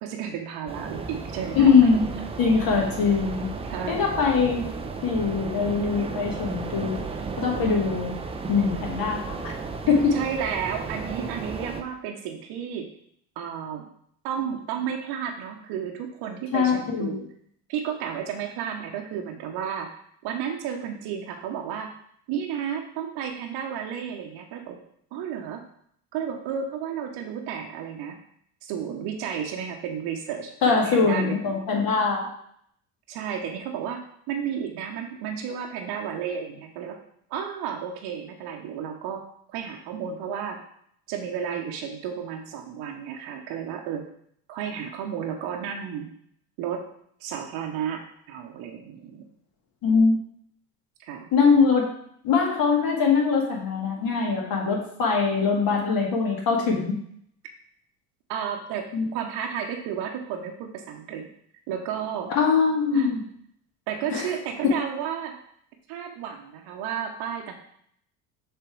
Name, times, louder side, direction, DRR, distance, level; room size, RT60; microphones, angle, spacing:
voice 1, 0.0-1.9 3.7-4.0 10.1-12.9 13.4-13.8 14.2-17.2 17.7-19.9 20.2-21.9 22.3-24.8 25.1-25.6 26.1-28.2 28.6-31.4 33.1-34.0 34.3-37.0 37.3-39.2 39.5-40.6 41.1-44.1 44.5-46.1 46.6-46.9 47.2-48.0 48.3-49.2 51.0-51.3 58.3-61.3 61.7-62.3 62.9-63.1 63.9-65.4 65.9-67.5, right 8 dB, 50° right, 2 dB, 1.0 m, -32 dB
sound 1, 0.7-11.8, right 4 dB, 15° right, 0.5 m, -34 dB
voice 2, 1.5-2.1 2.4-3.5 3.9-4.6 5.0-6.9 7.4-8.2 8.5-9.5 9.9-10.2 16.5-17.2 30.6-32.3 49.8-50.1 51.3-51.9 52.2-57.0 58.9-59.0 62.3-63.2 64.1-64.3 64.6-64.8, left 5 dB, 45° left, -1 dB, 2.1 m, -22 dB
6.8 x 3.3 x 4.6 m, 0.67 s
figure-of-eight pair, 65°, 47 cm